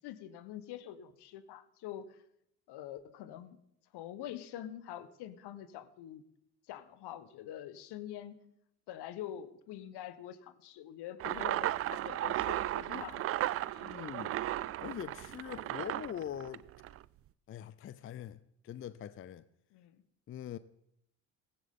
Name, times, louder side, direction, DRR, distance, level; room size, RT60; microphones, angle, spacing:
voice 1, 0.0-2.2 2.7-3.6 3.9-6.2 6.7-8.4 8.9-13.2 13.7-13.9 19.7-20.0, left 11 dB, 55° left, 1.3 m, -45 dB
sound 1, 11.2-17.0, right 14 dB, 35° right, 0.4 m, -35 dB
voice 2, 13.8-14.3 14.8-16.6 17.5-18.4 18.6-19.5 20.3-20.6, left 10 dB, 30° left, 0.5 m, -42 dB
16.0 x 15.5 x 3.7 m
hypercardioid pair, 60°, 46 cm